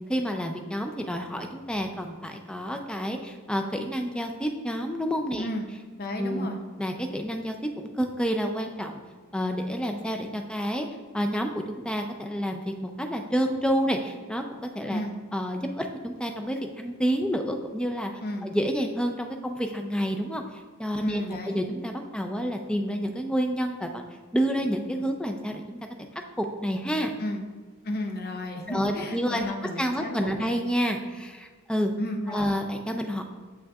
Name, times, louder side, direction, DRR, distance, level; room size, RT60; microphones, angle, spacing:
voice 1, 0.1-5.5 6.2-6.5 6.8-9.0 9.3-10.9 11.1-15.0 15.3-18.1 18.4-20.4 20.8-24.0 24.3-25.8 26.4-27.1 28.7-29.5 29.8-31.9 32.3-33.2, equal, 5° left, 4 dB, 0.4 m, -29 dB
voice 2, 6.0-6.6 14.9-15.1 18.2-18.5 21.0-21.6 27.2-27.4 27.8-30.5 32.0-32.5, left 1 dB, 45° left, 3 dB, 0.6 m, -33 dB
7.3 x 6.1 x 2.3 m, 1.4 s
head